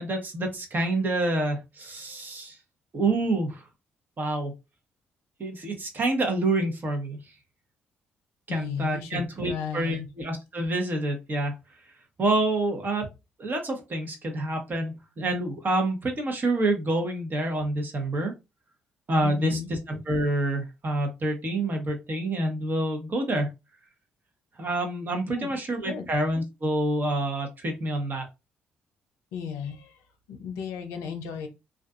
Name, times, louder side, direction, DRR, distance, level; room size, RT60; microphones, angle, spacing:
voice 1, 0.0-2.6 2.9-3.6 4.2-4.5 5.4-7.2 8.5-11.5 12.2-13.1 13.4-18.3 19.1-23.5 24.6-28.3, right 2 dB, 40° right, 4 dB, 1.0 m, -27 dB
voice 2, 8.5-10.1 19.2-19.7 25.3-25.5 25.8-26.1 29.3-30.0 30.3-31.5, left 7 dB, 80° left, 6 dB, 0.5 m, -34 dB
2.4 x 2.4 x 2.4 m, 0.25 s
hypercardioid pair, 50°, 5 cm